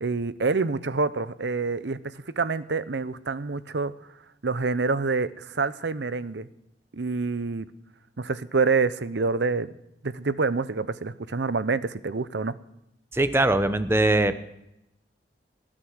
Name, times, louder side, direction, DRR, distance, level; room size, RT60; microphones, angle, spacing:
voice 1, 0.0-3.9 4.4-6.5 6.9-7.7 8.2-9.7 10.0-12.5, right 4 dB, 80° right, 15 dB, 0.8 m, -27 dB
voice 2, 13.1-14.4, right 2 dB, 15° right, 11 dB, 0.9 m, -21 dB
18.5 x 10.0 x 6.4 m, 0.84 s
head